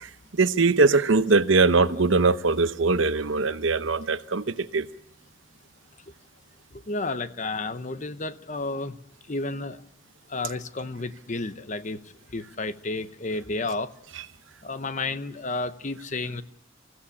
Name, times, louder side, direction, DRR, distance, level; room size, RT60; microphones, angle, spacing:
voice 1, 0.0-4.9, right 3 dB, 70° right, 0.9 m, -22 dB
voice 2, 6.7-9.0 9.3-9.8 10.3-12.0 12.3-13.9 14.6-16.4, left 3 dB, 40° left, 0.8 m, -31 dB
26.5 x 16.0 x 8.6 m
head